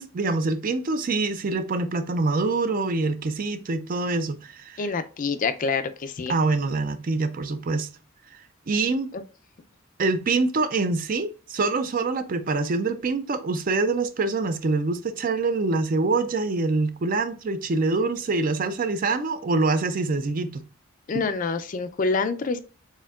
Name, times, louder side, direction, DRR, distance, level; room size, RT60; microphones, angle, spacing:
voice 1, 0.0-4.9 6.3-7.9 8.7-9.1 10.0-20.6 21.1-21.2, right 3 dB, 45° right, 0.4 m, -25 dB
voice 2, 4.8-6.3 21.1-22.6, left 4 dB, 40° left, 0.4 m, -26 dB
4.3 x 3.6 x 2.3 m
head